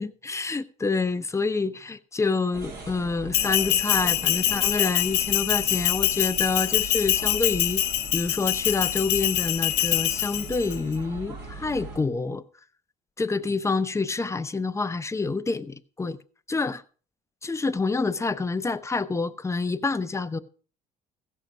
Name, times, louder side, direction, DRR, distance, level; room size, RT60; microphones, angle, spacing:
voice 1, 0.0-12.4 13.2-16.2 16.5-16.8 17.4-20.4, left 4 dB, 15° left, 0.7 m, -27 dB
sound 1, 2.5-12.0, right 3 dB, 75° right, 5.0 m, -40 dB
Bell, 3.3-10.8, left 13 dB, 80° left, 1.1 m, -25 dB
15.5 x 6.6 x 6.0 m
cardioid pair, 110°, 17 cm